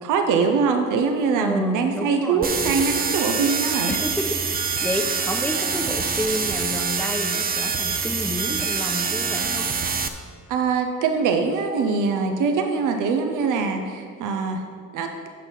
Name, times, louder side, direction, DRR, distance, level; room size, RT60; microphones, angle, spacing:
voice 1, 0.0-4.0 10.5-14.6 14.9-15.1, right 5 dB, 85° right, 5 dB, 0.8 m, -23 dB
voice 2, 1.4-2.5 3.9-9.7, left 1 dB, 5° left, 5 dB, 0.8 m, -30 dB
sound 1, 2.4-10.1, right 5 dB, 30° right, 0.6 m, -25 dB
8.6 x 5.8 x 5.3 m, 2.1 s
cardioid pair, 90°, 30 cm